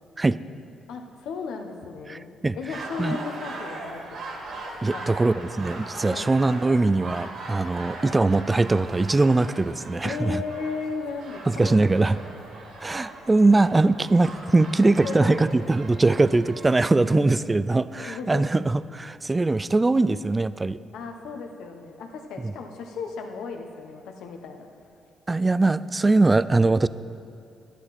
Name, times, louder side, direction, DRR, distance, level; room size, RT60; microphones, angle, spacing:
voice 1, 0.9-4.0 4.9-5.0 6.1-6.3 10.0-11.8 14.9-15.5 16.1-16.2 17.1-17.3 18.0-18.5 20.9-24.7, left 5 dB, 80° left, 4 dB, 1.1 m, -35 dB
voice 2, 2.1-2.6 3.0-3.2 4.8-10.4 11.5-12.2 12.8-20.8 22.4-22.5 25.3-26.9, right 2 dB, 20° right, 16 dB, 0.3 m, -21 dB
sound 1, 2.7-16.7, right 2 dB, 75° right, 2.2 m, -40 dB
11.5 x 11.0 x 4.2 m, 2.5 s
cardioid pair, 90°, 0 cm